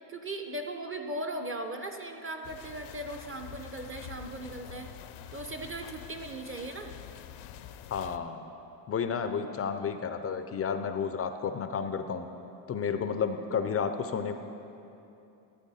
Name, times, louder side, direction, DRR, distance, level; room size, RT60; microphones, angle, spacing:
voice 1, 0.1-4.9 5.3-6.9, right 1 dB, 25° right, 5 dB, 0.6 m, -38 dB
sound 1, 2.4-8.2, left 10 dB, 75° left, 0.6 m, -46 dB
voice 2, 7.9-8.5 8.9-12.3 12.7-14.3, left 6 dB, 35° left, 8 dB, 0.4 m, -31 dB
13.5 x 7.8 x 4.1 m, 2.8 s
cardioid pair, 120°, 48 cm